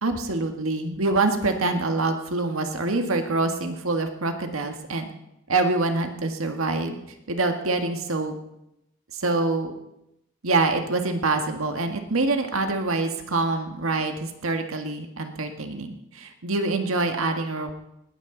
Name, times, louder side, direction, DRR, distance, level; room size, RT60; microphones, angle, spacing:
voice 1, 0.0-5.1 5.5-7.0 7.3-8.4 9.1-9.7 10.4-17.7, right 3 dB, 80° right, 5 dB, 1.8 m, -25 dB
19.5 x 14.0 x 4.0 m, 0.85 s
head